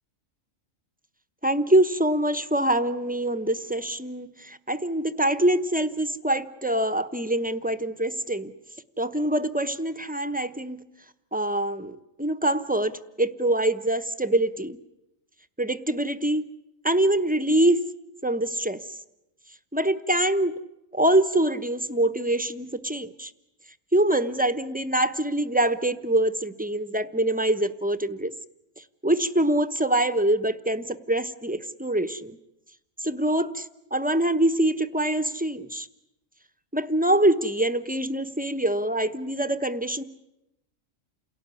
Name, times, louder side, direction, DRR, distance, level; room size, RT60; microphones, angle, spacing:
voice 1, 1.4-8.5 9.0-10.8 11.3-14.8 15.6-16.5 16.8-17.8 18.2-18.8 19.7-20.5 20.9-23.3 23.9-28.3 29.0-32.3 33.0-35.9 36.7-40.0, right 1 dB, 10° right, 11 dB, 0.8 m, -24 dB
28.5 x 17.5 x 9.8 m, 0.89 s
omnidirectional pair, 1.4 m